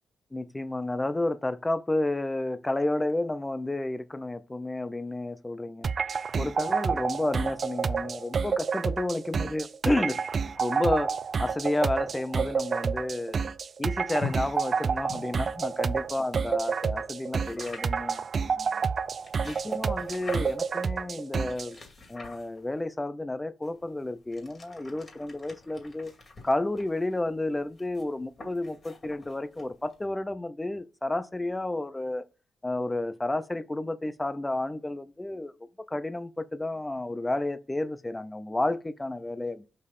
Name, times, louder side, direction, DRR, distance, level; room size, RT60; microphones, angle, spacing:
voice 1, 0.3-5.9 6.4-10.2 10.6-11.1 11.4-13.4 13.8-18.2 18.5-18.8 19.4-21.8 22.1-26.1 26.4-32.2 32.6-39.7, left 2 dB, 10° left, 0.6 m, -31 dB
sound 1, 5.8-21.7, right 5 dB, 40° right, 0.4 m, -29 dB
sound 2, 14.2-16.3 17.4-18.1 19.0-20.8 21.5-22.8 23.6-30.0, left 3 dB, 30° left, 2.3 m, -46 dB
6.6 x 5.2 x 5.4 m
wide cardioid pair, 150°, 0 cm